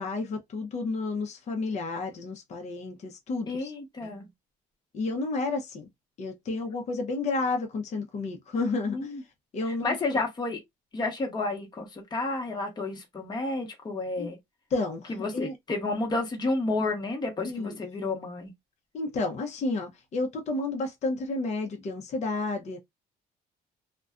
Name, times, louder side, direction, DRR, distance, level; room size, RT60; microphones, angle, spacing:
voice 1, 0.0-3.7 4.0-4.1 4.9-5.9 6.2-9.1 9.5-10.2 14.2-14.3 14.7-15.5 17.4-17.8 18.9-22.8, left 3 dB, 40° left, 0.6 m, -31 dB
voice 2, 3.5-4.3 8.9-9.2 9.8-10.6 10.9-14.4 15.1-18.5, left 3 dB, 25° left, 1.0 m, -31 dB
2.4 x 2.1 x 2.4 m
cardioid pair, 110°, 17 cm